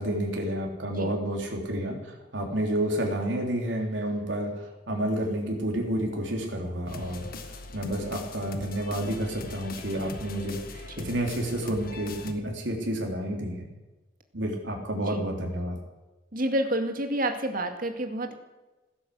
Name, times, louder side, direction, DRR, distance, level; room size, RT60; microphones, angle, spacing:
voice 1, 0.0-13.7 14.3-15.8, right 1 dB, 90° right, 1 dB, 3.5 m, -30 dB
sound 1, 6.9-12.3, left 3 dB, 55° left, 1.6 m, -41 dB
voice 2, 16.3-18.3, right 1 dB, 50° right, 5 dB, 2.2 m, -29 dB
16.0 x 11.5 x 7.9 m, 1.1 s
head